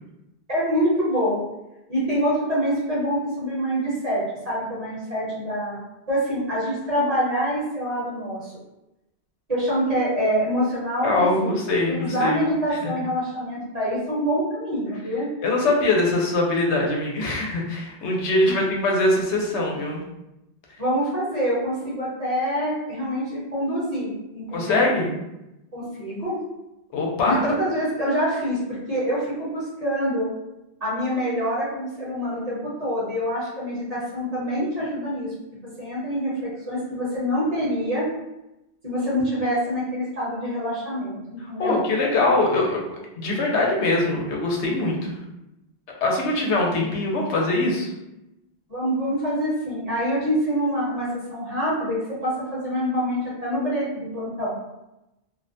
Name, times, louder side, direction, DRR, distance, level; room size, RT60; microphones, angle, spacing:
voice 1, 0.5-1.4 1.9-5.8 6.1-8.5 9.5-11.1 11.4-11.5 11.9-15.3 18.4-18.6 20.8-24.8 25.7-26.4 27.2-28.6 28.9-30.3 30.8-35.3 35.8-38.1 38.8-41.8 48.7-52.0 52.2-54.5, equal, 40° right, -8 dB, 0.9 m, -25 dB
voice 2, 11.0-12.4 12.7-12.9 15.4-20.0 24.5-25.1 26.9-27.4 41.6-45.2 46.0-47.9, left 2 dB, 90° left, -1 dB, 0.9 m, -22 dB
2.4 x 2.1 x 2.6 m, 0.93 s
omnidirectional pair, 1.1 m